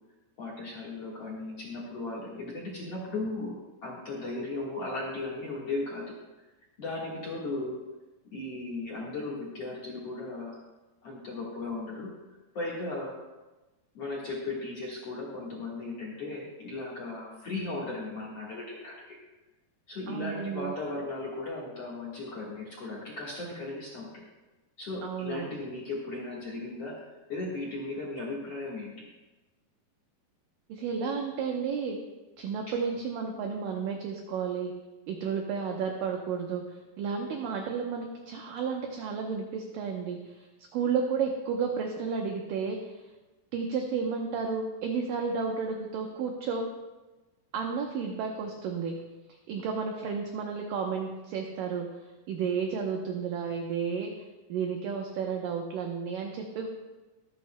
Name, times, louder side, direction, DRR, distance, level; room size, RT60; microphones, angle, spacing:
voice 1, 0.4-3.6 3.8-6.1 6.8-7.8 8.3-10.6 11.0-12.2 12.5-13.2 13.9-19.2 19.9-24.2 24.8-29.1, left 2 dB, 55° left, -4 dB, 1.9 m, -36 dB
voice 2, 20.1-20.7 25.0-25.5 30.7-32.0 32.4-34.7 35.1-40.5 40.7-43.0 43.5-46.7 47.5-49.0 49.5-51.9 52.3-54.1 54.5-56.7, right 6 dB, 75° right, 2 dB, 2.1 m, -32 dB
23.5 x 9.5 x 2.2 m, 1.1 s
omnidirectional pair, 4.8 m